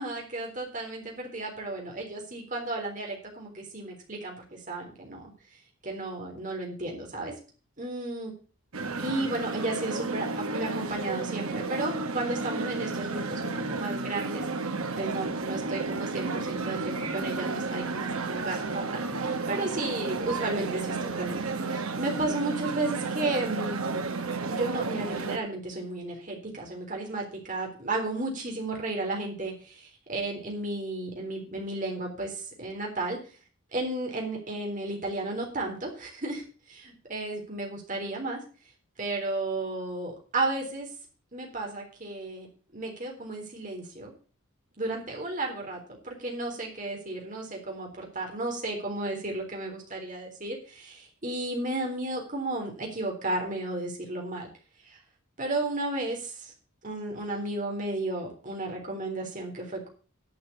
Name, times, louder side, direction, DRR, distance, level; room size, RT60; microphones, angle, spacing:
voice 1, 0.0-5.3 5.8-7.3 7.8-8.3 9.0-14.5 15.0-21.4 21.6-24.1 24.5-33.2 33.7-38.4 39.0-40.9 41.3-42.5 42.7-44.1 44.8-54.5 54.8-55.0 55.4-56.5 56.8-59.9, right 2 dB, 35° right, 0 dB, 3.6 m, -33 dB
sound 1, 8.7-25.4, right 3 dB, 75° right, 1.4 m, -32 dB
11.5 x 5.8 x 8.2 m, 0.38 s
head